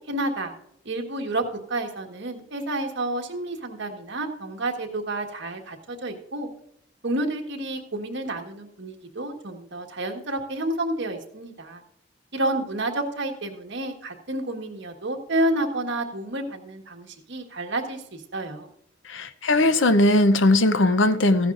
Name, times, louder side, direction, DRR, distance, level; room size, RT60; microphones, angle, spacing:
voice 1, 0.1-0.5 0.8-1.4 1.7-6.5 7.0-11.8 12.3-18.7, right 1 dB, 65° right, 1.4 m, -30 dB
voice 2, 19.1-21.5, left 2 dB, 75° left, 0.7 m, -19 dB
14.5 x 10.0 x 2.5 m
head